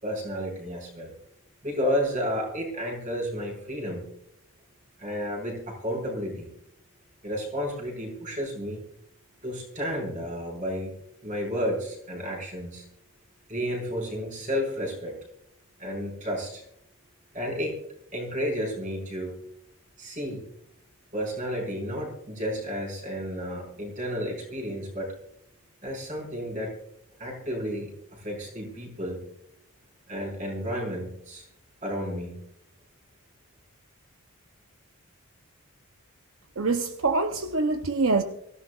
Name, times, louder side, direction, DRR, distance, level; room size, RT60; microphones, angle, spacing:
voice 1, 0.0-1.1 1.6-4.0 5.0-6.5 7.2-8.8 9.4-10.9 11.2-12.9 13.5-15.2 15.8-16.6 17.3-17.8 18.1-19.4 20.0-20.4 21.1-25.1 25.8-26.7 27.2-29.2 30.1-31.5 31.8-32.3, equal, 35° right, -1 dB, 5.2 m, -32 dB
voice 2, 36.6-38.2, right 3 dB, 65° right, 6 dB, 0.8 m, -25 dB
24.5 x 15.5 x 2.4 m, 0.75 s
head